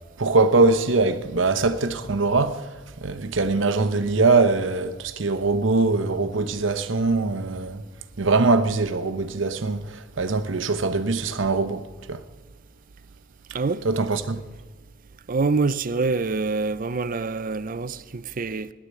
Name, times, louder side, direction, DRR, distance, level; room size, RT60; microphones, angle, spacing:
voice 1, 0.2-7.8 8.2-12.2 13.8-14.4, right 3 dB, 70° right, 0.9 m, -22 dB
voice 2, 15.3-18.7, right 4 dB, 45° right, 0.5 m, -25 dB
16.5 x 10.5 x 8.2 m
head